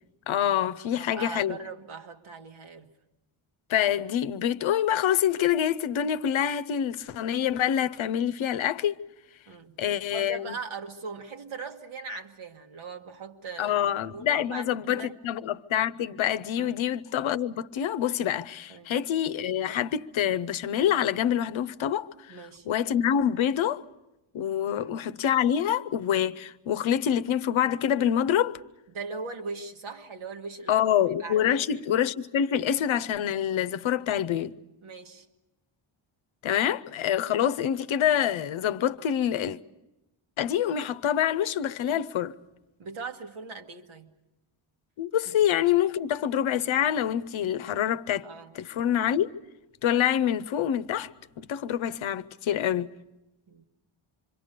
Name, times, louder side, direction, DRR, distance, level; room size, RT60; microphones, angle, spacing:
voice 1, 0.3-1.6 3.7-8.9 9.8-10.5 13.6-22.4 22.7-23.8 24.3-28.6 30.7-34.6 36.4-39.6 40.4-42.3 45.0-48.3 48.5-49.4 49.8-51.1 51.4-52.9, left 10 dB, 70° left, 0.8 m, -26 dB
voice 2, 0.9-2.9 9.5-9.8 10.1-15.1 16.6-16.8 18.7-18.9 22.3-22.7 24.7-25.0 28.9-31.6 34.8-35.3 42.8-44.1 45.3-45.4 48.2-48.5 53.5-53.6, right 4 dB, 75° right, 1.7 m, -40 dB
26.5 x 24.0 x 6.7 m
wide cardioid pair, 145°, 50 cm